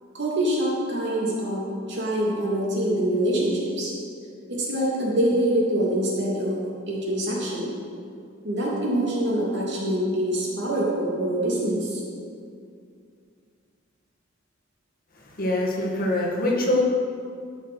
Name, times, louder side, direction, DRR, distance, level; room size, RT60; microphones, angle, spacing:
voice 1, 0.1-3.9 4.5-6.6 6.9-7.7 8.4-12.0, right 1 dB, 60° right, -4 dB, 3.0 m, -25 dB
voice 2, 15.2-16.8, left 1 dB, 50° left, -2 dB, 2.0 m, -24 dB
13.0 x 6.4 x 6.4 m, 2.3 s
head